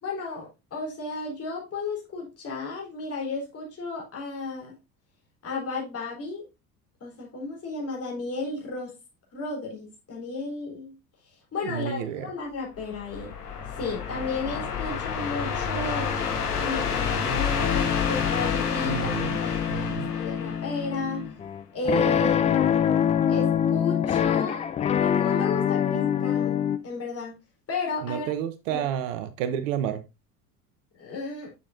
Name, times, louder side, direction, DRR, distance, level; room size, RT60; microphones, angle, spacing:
voice 1, 0.0-4.8 5.4-6.5 7.0-9.0 9.3-11.0 11.5-13.3 13.8-16.1 16.5-19.9 20.1-21.3 21.7-22.8 23.3-24.6 24.9-27.4 27.7-28.3 28.7-28.9 31.0-31.5, left 3 dB, 30° left, 3.7 m, -33 dB
voice 2, 11.6-12.3 18.9-19.4 19.7-20.1 28.0-30.0, right 9 dB, 55° right, 0.8 m, -30 dB
sound 1, 12.8-21.3, left 6 dB, 80° left, 1.2 m, -29 dB
sound 2, 16.0-26.8, left 9 dB, 15° left, 0.4 m, -26 dB
7.0 x 6.6 x 2.6 m
figure-of-eight pair, 70°, 46 cm